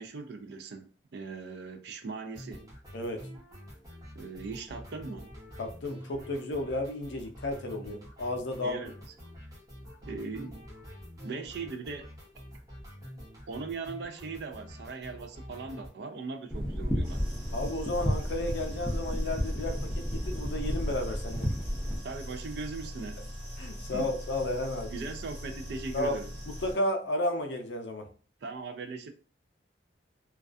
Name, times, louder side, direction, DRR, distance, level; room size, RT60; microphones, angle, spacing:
voice 1, 0.0-2.7 4.2-5.3 8.6-8.9 10.0-10.7 11.2-12.1 13.5-17.2 22.0-23.3 23.9-24.1 24.9-26.3 28.4-29.1, right 4 dB, 60° right, 0.4 m, -39 dB
sound 1, 2.3-15.9, equal, 20° right, 0.8 m, -47 dB
voice 2, 5.6-8.8 17.5-21.5 23.6-24.9 25.9-26.2 26.5-28.1, left 1 dB, 70° left, 0.5 m, -33 dB
sound 2, 16.5-22.0, equal, 5° left, 0.4 m, -32 dB
sound 3, 17.0-26.7, equal, 85° right, 1.3 m, -42 dB
2.3 x 2.2 x 2.4 m
head